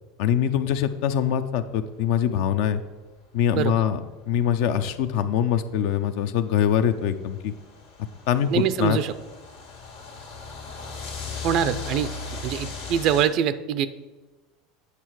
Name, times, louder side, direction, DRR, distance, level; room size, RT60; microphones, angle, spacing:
voice 1, 0.2-2.8 3.3-7.5 8.3-9.0, left 9 dB, 65° left, 10 dB, 0.6 m, -23 dB
sound 1, 2.9-3.0 4.1-4.2 5.6-13.2, left 4 dB, 85° left, 1.7 m, -37 dB
voice 2, 3.5-3.8 8.5-9.1 11.4-12.1 12.4-13.9, right 9 dB, 55° right, 13 dB, 0.5 m, -24 dB
8.4 x 5.6 x 4.7 m, 1.2 s
hypercardioid pair, 85°, 0 cm